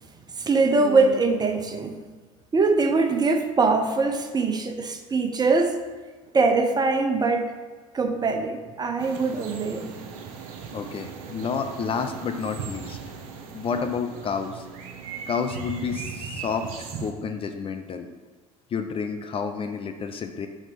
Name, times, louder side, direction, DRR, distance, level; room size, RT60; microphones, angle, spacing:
voice 1, 0.4-2.0 2.5-5.8 6.3-7.5 7.9-9.9, right 3 dB, 20° right, 6 dB, 0.7 m, -22 dB
sound 1, 9.0-17.1, right 6 dB, 60° right, 0.9 m, -38 dB
voice 2, 10.7-13.0 13.5-14.6 15.3-18.1 18.7-20.5, left 6 dB, 30° left, 6 dB, 0.6 m, -30 dB
5.9 x 4.1 x 5.3 m, 1.4 s
figure-of-eight pair, 70°, 19 cm